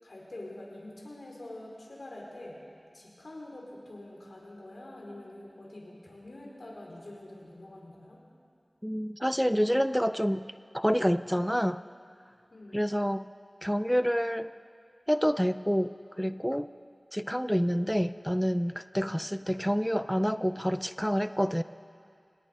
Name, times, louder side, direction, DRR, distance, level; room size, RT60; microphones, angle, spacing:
voice 1, 0.0-2.6 2.9-8.2 12.5-12.8 18.9-19.2, left 1 dB, 85° left, -2 dB, 5.0 m, -45 dB
voice 2, 8.8-10.5 10.7-11.8 12.7-13.3 13.6-14.5 15.1-16.7 17.1-21.6, equal, ahead, 12 dB, 0.4 m, -28 dB
29.0 x 18.0 x 5.5 m, 2.4 s
wide cardioid pair, 60°, 0 cm